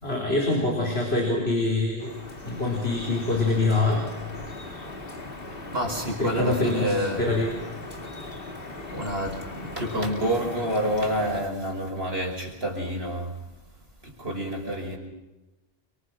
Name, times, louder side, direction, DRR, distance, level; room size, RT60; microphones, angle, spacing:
voice 1, 0.0-2.1 2.4-4.1 6.2-7.5, left 2 dB, 90° left, 0 dB, 4.8 m, -25 dB
Drip, 2.0-11.4, left 2 dB, 65° left, 2.6 m, -39 dB
voice 2, 5.7-7.3 8.9-13.3 14.0-15.0, equal, 75° right, 1 dB, 5.7 m, -28 dB
29.5 x 24.0 x 6.2 m, 1.0 s
omnidirectional pair, 1.0 m